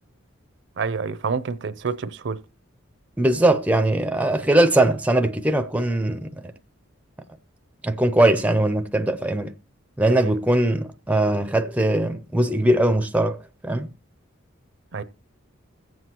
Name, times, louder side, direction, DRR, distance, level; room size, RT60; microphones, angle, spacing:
voice 1, 0.8-2.4 10.2-10.3 14.9-15.0, right 5 dB, 60° right, 0.5 m, -28 dB
voice 2, 3.2-6.5 7.8-9.5 10.0-13.9, right 1 dB, 5° right, 0.4 m, -21 dB
21.5 x 7.7 x 2.9 m
head